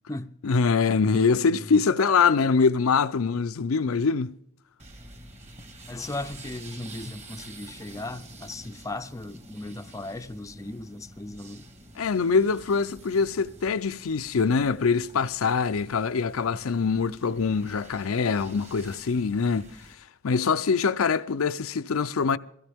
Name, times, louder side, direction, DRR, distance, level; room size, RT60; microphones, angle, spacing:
voice 1, 0.4-4.3 12.0-19.7 20.2-22.4, left 5 dB, 75° left, 0.5 m, -24 dB
voice 2, 1.1-1.6 5.9-11.7, left 2 dB, 15° left, 0.5 m, -37 dB
sound 1, 4.8-19.9, right 1 dB, 35° right, 1.7 m, -47 dB
22.5 x 16.0 x 3.5 m
head